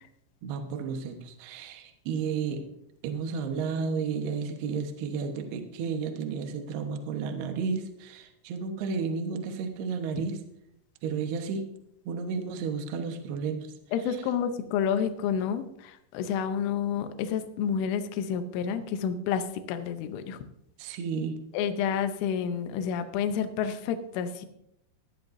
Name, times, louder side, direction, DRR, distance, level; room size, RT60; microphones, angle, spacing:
voice 1, 0.4-2.6 3.0-10.4 11.0-11.7 12.1-13.7 14.1-14.2 20.8-21.4, right 5 dB, 70° right, 5 dB, 2.9 m, -32 dB
voice 2, 13.9-20.4 21.5-24.5, left 7 dB, 85° left, 8 dB, 3.4 m, -29 dB
19.5 x 13.0 x 2.7 m, 0.78 s
omnidirectional pair, 5.5 m